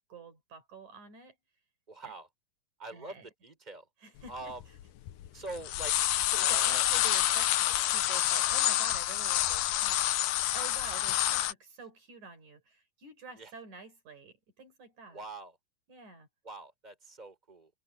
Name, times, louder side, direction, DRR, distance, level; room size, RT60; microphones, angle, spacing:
voice 1, 0.1-1.4 2.0-2.1 2.9-3.3 4.0-4.5 5.3-5.4 6.3-15.2 15.9-16.3, right 5 dB, 65° right, 5.8 m, -48 dB
voice 2, 1.9-2.3 2.8-3.9 4.3-4.6 5.3-6.0 6.4-6.9 13.4-13.5 15.1-15.6 16.4-17.7, right 2 dB, 10° right, 5.6 m, -43 dB
sound 1, 4.3-4.4 4.6-5.3 5.5-11.5, left 13 dB, 85° left, 2.6 m, -28 dB
omnidirectional pair, 3.8 m